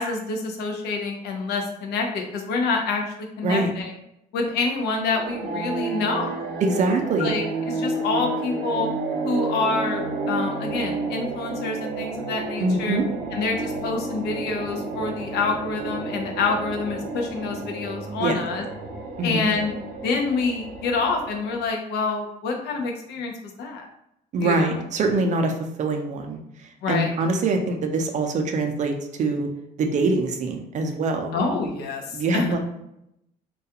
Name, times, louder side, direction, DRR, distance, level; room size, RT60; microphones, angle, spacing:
voice 1, 0.0-3.0 3.4-3.9 4.3-6.4 7.2-8.9 9.2-13.0 13.3-18.6 19.2-19.7 20.0-23.3 23.6-23.9 24.4-24.7 26.8-27.2 31.3-32.0 32.3-32.5, left 4 dB, 75° left, 2 dB, 0.5 m, -27 dB
sound 1, 5.1-21.7, right 3 dB, 75° right, 0.7 m, -31 dB
voice 2, 6.6-7.4 12.6-13.1 18.2-18.4 19.2-19.5 24.3-29.5 29.8-31.3 32.1-32.6, right 3 dB, 45° right, 4 dB, 0.4 m, -24 dB
2.3 x 2.2 x 2.7 m, 0.81 s
cardioid pair, 110°, 17 cm